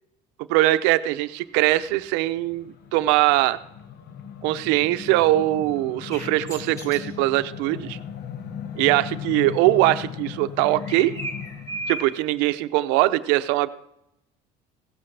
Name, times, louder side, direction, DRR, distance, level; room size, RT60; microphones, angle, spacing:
voice 1, 0.5-3.6 4.4-8.0 8.8-11.1 11.9-13.7, right 16 dB, 85° right, 13 dB, 0.6 m, -21 dB
sound 1, 1.5-12.0, left 8 dB, 65° left, 1.2 m, -37 dB
sound 2, 6.1-7.1 10.7-12.2, right 1 dB, 20° left, 2.1 m, -35 dB
16.0 x 13.5 x 3.3 m, 0.83 s
cardioid pair, 115°, 17 cm